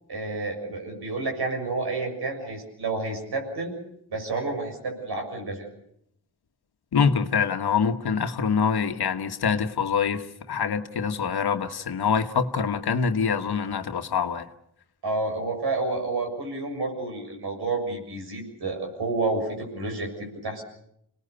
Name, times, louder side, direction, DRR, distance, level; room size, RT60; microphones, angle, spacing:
voice 1, 0.1-3.7 4.1-5.7 15.0-20.6, right 3 dB, 75° right, 6.9 m, -30 dB
voice 2, 6.9-14.5, left 6 dB, 75° left, 1.4 m, -25 dB
26.5 x 19.5 x 6.9 m
cardioid pair, 60°, 39 cm